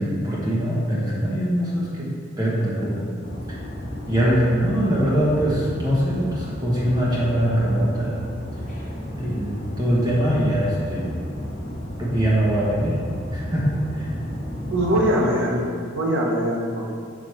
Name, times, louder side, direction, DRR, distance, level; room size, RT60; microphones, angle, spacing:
voice 1, 0.0-3.1 4.1-8.2 9.1-11.1 12.0-13.0 13.3-14.1, equal, 20° right, -7 dB, 1.2 m, -22 dB
sound 1, 3.2-15.0, equal, 40° left, 1.0 m, -33 dB
voice 2, 14.7-17.0, equal, 70° right, -2 dB, 1.2 m, -22 dB
4.9 x 4.8 x 5.8 m, 2.2 s
head